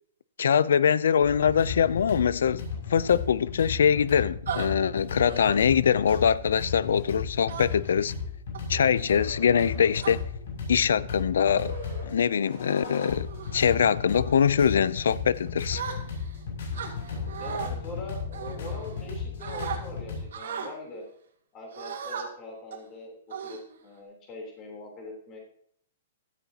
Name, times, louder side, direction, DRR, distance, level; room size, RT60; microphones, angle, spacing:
voice 1, 0.4-8.1 8.7-10.2 10.7-11.8 12.0-15.8, left 7 dB, 85° left, 0.5 m, -23 dB
sound 1, 1.2-20.2, left 5 dB, 55° left, 6.8 m, -35 dB
sound 2, 4.5-4.7 5.2-5.6 6.1-6.4 7.5-7.9 8.5-8.8 9.6-10.1 11.0-11.2 11.7-12.0 12.5-12.8 13.3-13.6 14.1-14.4 15.7-16.3 16.7-17.7 18.3-19.1 19.4-19.8 20.3-20.7 21.7-22.2 22.7-22.9 23.3-24.0, right 7 dB, 80° right, 3.1 m, -37 dB
voice 2, 17.4-21.0 21.5-23.2 23.4-25.4, left 2 dB, 20° left, 3.5 m, -42 dB
16.0 x 13.0 x 2.9 m
hypercardioid pair, 180°, 0 cm